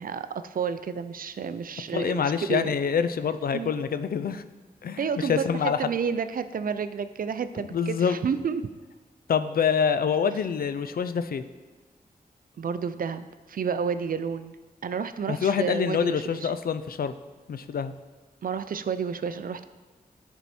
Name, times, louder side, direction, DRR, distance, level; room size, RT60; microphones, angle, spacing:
voice 1, 0.0-2.7 3.5-3.7 5.0-8.7 12.6-14.6 14.8-16.5 18.4-19.7, right 6 dB, 65° right, 12 dB, 0.4 m, -30 dB
voice 2, 1.9-4.4 4.8-5.8 7.7-8.2 9.3-11.4 15.3-17.1 17.5-17.9, left 7 dB, 70° left, 11 dB, 0.4 m, -26 dB
10.0 x 4.5 x 4.3 m, 1.3 s
wide cardioid pair, 80°, 16 cm